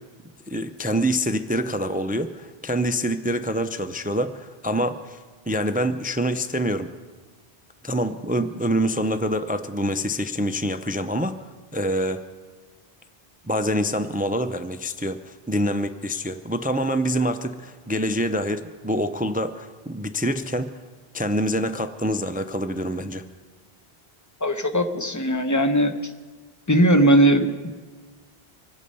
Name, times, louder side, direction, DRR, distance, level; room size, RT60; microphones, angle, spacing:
voice 1, 0.5-5.2 5.5-6.9 7.8-11.3 11.7-12.2 13.5-20.7 21.1-23.2, equal, 15° right, 10 dB, 0.3 m, -26 dB
voice 2, 24.4-25.9 26.7-27.7, right 1 dB, 20° left, 7 dB, 0.8 m, -19 dB
25.0 x 8.5 x 5.4 m, 1.4 s
omnidirectional pair, 1.1 m